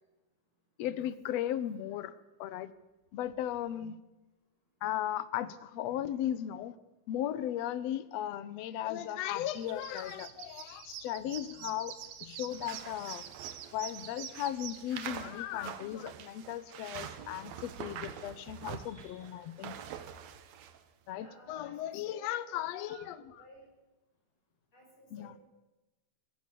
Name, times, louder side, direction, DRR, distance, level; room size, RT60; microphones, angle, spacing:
voice 1, 0.8-2.1 2.4-2.7 3.1-4.0 4.8-6.7 7.1-11.9 12.2-13.2 13.7-19.8 21.1-23.2 25.1-25.3, left 11 dB, 75° left, 15 dB, 1.5 m, -36 dB
sound 1, 9.4-14.8, right 10 dB, 85° right, 3.3 m, -46 dB
sound 2, 12.5-20.8, right 9 dB, 60° right, 2.1 m, -45 dB
voice 2, 18.8-19.3 21.1-23.7 24.7-25.4, right 1 dB, 35° left, -1 dB, 8.0 m, -56 dB
24.0 x 17.5 x 6.9 m, 1.1 s
omnidirectional pair, 4.2 m